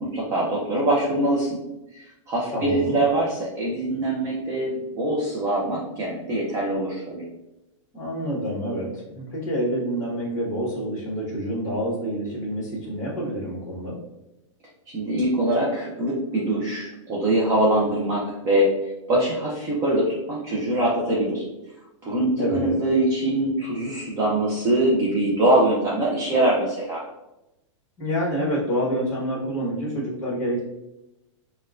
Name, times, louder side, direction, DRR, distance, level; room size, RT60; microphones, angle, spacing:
voice 1, 0.0-1.6 1.9-7.2 14.9-21.4 22.0-27.0, right 1 dB, 20° right, -5 dB, 0.4 m, -23 dB
voice 2, 2.5-3.0 7.9-14.0 22.4-22.7 28.0-30.6, equal, 20° left, -5 dB, 1.3 m, -27 dB
4.2 x 2.1 x 2.5 m, 0.94 s
supercardioid pair, 160°, 17 cm